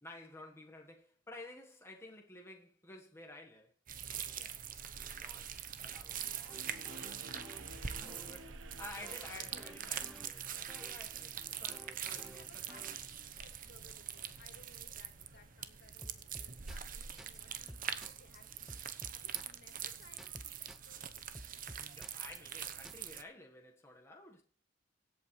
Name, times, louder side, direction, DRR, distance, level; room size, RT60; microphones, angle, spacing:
voice 1, 0.0-3.7 4.1-5.5 5.8-12.4 21.7-24.4, left 2 dB, 15° left, 1.4 m, -53 dB
sound 1, 3.9-23.2, right 9 dB, 45° right, 0.9 m, -44 dB
sound 2, 6.5-11.0 11.7-13.3 16.0-17.4 17.7-18.4 18.7-19.7 20.0-22.9, equal, ahead, 0.6 m, -54 dB
sound 3, 6.5-17.6, right 2 dB, 90° right, 1.0 m, -57 dB
voice 2, 8.9-9.8 12.0-21.1, left 2 dB, 60° left, 2.6 m, -62 dB
24.0 x 8.3 x 3.2 m
head